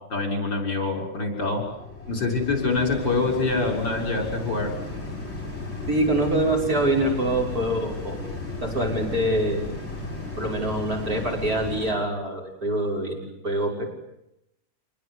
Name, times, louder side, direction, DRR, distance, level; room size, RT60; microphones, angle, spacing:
voice 1, 0.0-1.6 2.1-4.7, left 3 dB, 65° left, 3 dB, 7.1 m, -25 dB
sound 1, 0.7-11.9, left 2 dB, 30° left, 7.1 m, -35 dB
voice 2, 5.9-8.2 8.6-9.7 10.4-13.8, right 1 dB, 45° right, -1 dB, 6.8 m, -25 dB
27.5 x 20.5 x 9.7 m, 0.85 s
omnidirectional pair, 2.2 m